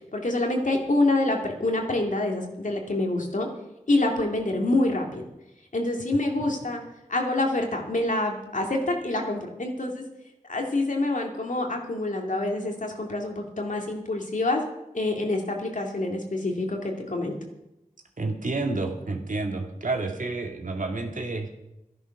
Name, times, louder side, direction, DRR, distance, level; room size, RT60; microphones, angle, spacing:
voice 1, 0.1-3.5 3.9-5.2 5.7-6.8 7.1-10.0 10.5-14.6 14.9-17.4, left 2 dB, 70° left, 2 dB, 2.6 m, -26 dB
voice 2, 18.2-21.5, right 3 dB, 75° right, 3 dB, 2.1 m, -29 dB
12.5 x 11.0 x 6.0 m, 0.90 s
wide cardioid pair, 50°, 14 cm